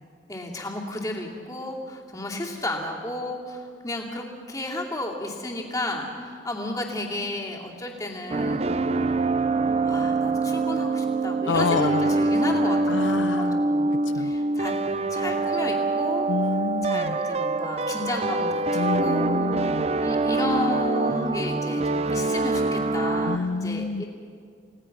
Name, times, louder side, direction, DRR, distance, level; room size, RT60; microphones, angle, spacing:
voice 1, 0.3-8.7 9.5-14.7 15.1-16.3 16.8-19.3 20.0-24.1, left 1 dB, 20° left, -1 dB, 2.6 m, -33 dB
sound 1, 8.3-23.4, right 3 dB, 35° right, 0.5 m, -25 dB
voice 2, 11.5-12.2 12.9-14.3 16.3-17.2 18.7-19.9 23.3-24.0, left 4 dB, 80° left, 13 dB, 0.5 m, -28 dB
29.0 x 17.5 x 6.0 m, 2.2 s
head